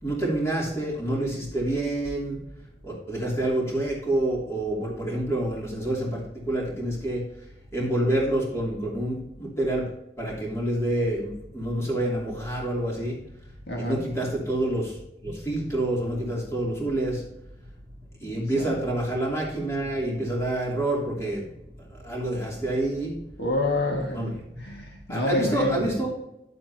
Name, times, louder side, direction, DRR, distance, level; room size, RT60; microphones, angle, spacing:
voice 1, 0.0-2.4 2.8-7.2 7.7-9.9 10.2-13.2 13.8-17.2 18.2-21.5 21.9-23.2 24.1-24.8 25.1-26.1, right 1 dB, 15° left, -4 dB, 2.9 m, -27 dB
voice 2, 13.7-14.0 18.6-18.7 23.4-25.9, left 1 dB, 75° left, 0 dB, 1.7 m, -28 dB
11.0 x 7.6 x 2.8 m, 0.85 s
head